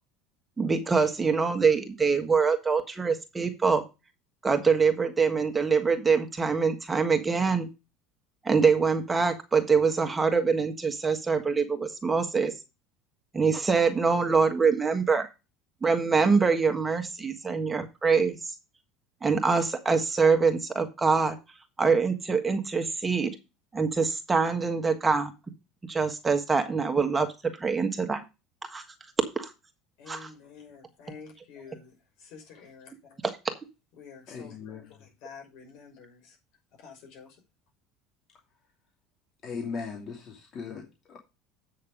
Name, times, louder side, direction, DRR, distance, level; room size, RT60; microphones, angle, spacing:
voice 1, 0.6-3.8 4.4-7.7 8.4-12.5 13.3-15.3 15.8-18.4 19.2-21.4 21.8-23.3 23.7-25.3 25.9-27.3 27.6-28.2 28.7-28.8 29.3-29.5 30.1-30.3 33.2-33.4, right 5 dB, 15° right, 1.5 m, -24 dB
voice 2, 30.0-33.2 34.0-36.4 36.7-37.4, left 6 dB, 70° left, 5.9 m, -49 dB
voice 3, 34.3-34.8 39.4-41.2, left 5 dB, 45° left, 2.6 m, -38 dB
8.6 x 6.5 x 5.1 m
supercardioid pair, 120°, 0 cm